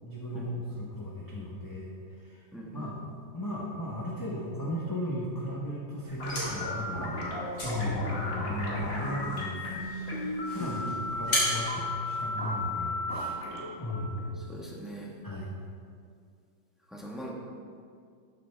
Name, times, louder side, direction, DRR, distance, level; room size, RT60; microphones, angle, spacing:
voice 1, 0.0-2.9 3.3-7.1 7.6-13.5 13.8-14.2 15.2-15.5, left 1 dB, 15° left, -5 dB, 0.8 m, -36 dB
voice 2, 2.5-2.9 10.5-10.9 14.4-15.1 16.9-17.3, right 1 dB, ahead, -3 dB, 1.2 m, -41 dB
sound 1, 6.0-12.8, left 1 dB, 75° left, 3.7 m, -37 dB
sound 2, 6.2-15.1, left 1 dB, 45° left, 2.0 m, -35 dB
12.5 x 8.6 x 3.5 m, 2.2 s
omnidirectional pair, 2.0 m